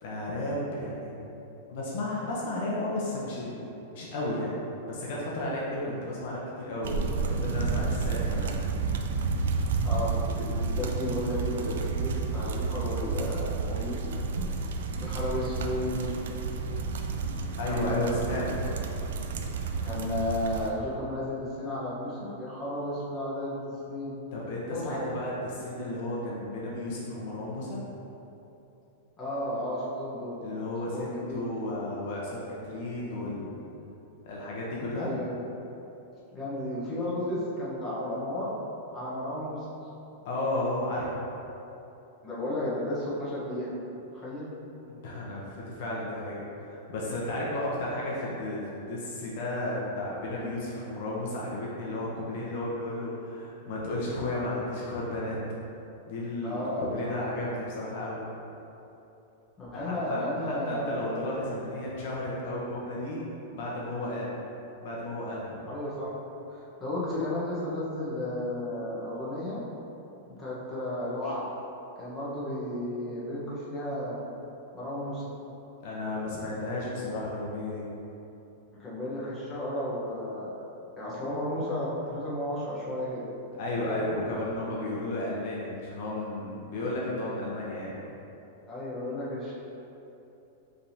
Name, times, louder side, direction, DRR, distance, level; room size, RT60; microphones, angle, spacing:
voice 1, 0.0-1.3 1.7-4.5 4.9-8.5 17.6-18.6 24.3-27.8 30.4-33.6 34.2-35.1 40.2-41.2 44.9-55.4 56.1-58.2 59.7-63.2 63.5-64.4 64.8-65.6 75.8-77.8 83.6-88.0, left 1 dB, 55° left, -5 dB, 0.8 m, -33 dB
sound 1, 6.8-20.7, right 4 dB, 80° right, 0.4 m, -31 dB
voice 2, 9.8-14.2 15.0-16.2 17.7-18.1 18.5-18.6 19.8-23.6 23.9-24.1 24.7-25.0 29.2-30.4 30.9-31.5 34.9-35.4 36.3-38.6 38.9-39.6 42.2-43.7 44.1-44.5 56.4-57.1 59.6-61.1 65.7-66.2 66.5-69.6 70.3-71.5 72.0-74.3 74.7-75.2 78.8-80.5 81.0-83.3 88.7-89.5, left 1 dB, 15° left, -9 dB, 1.1 m, -33 dB
5.2 x 3.4 x 2.8 m, 2.9 s
supercardioid pair, 160°, 0 cm